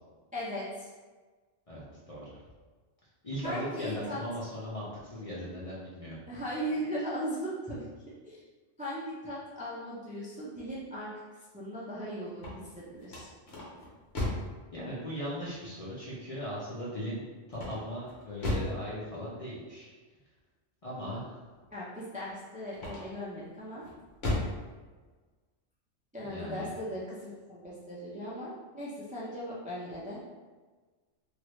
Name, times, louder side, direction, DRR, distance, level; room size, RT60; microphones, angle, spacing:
voice 1, 0.3-0.9 3.4-4.2 6.3-7.9 8.2-8.4 8.8-11.1 11.5-12.5 12.7-13.3 21.7-23.8 26.1-30.2, equal, 10° right, -8 dB, 0.3 m, -38 dB
voice 2, 1.7-2.4 3.2-6.2 14.7-19.9 20.8-21.4 26.2-26.7, equal, 35° left, -7 dB, 0.6 m, -38 dB
sound 1, 12.3-14.6 17.5-18.8 22.7-23.3 23.8-24.6, left 1 dB, 60° left, 1.1 m, -34 dB
3.0 x 2.5 x 3.1 m, 1.3 s
omnidirectional pair, 1.3 m